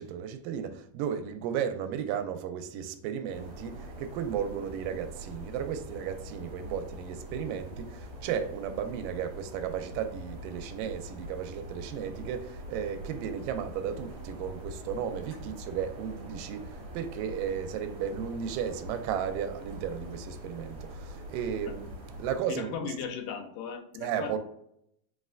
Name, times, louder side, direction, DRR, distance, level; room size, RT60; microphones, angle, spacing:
voice 1, 0.0-21.9 22.2-22.7 24.0-24.4, right 8 dB, 85° right, 2.1 m, -34 dB
sound 1, 3.3-22.4, equal, 60° right, 2.1 m, -44 dB
voice 2, 22.5-24.4, left 7 dB, 85° left, 2.2 m, -37 dB
5.0 x 3.2 x 2.4 m
omnidirectional pair, 3.8 m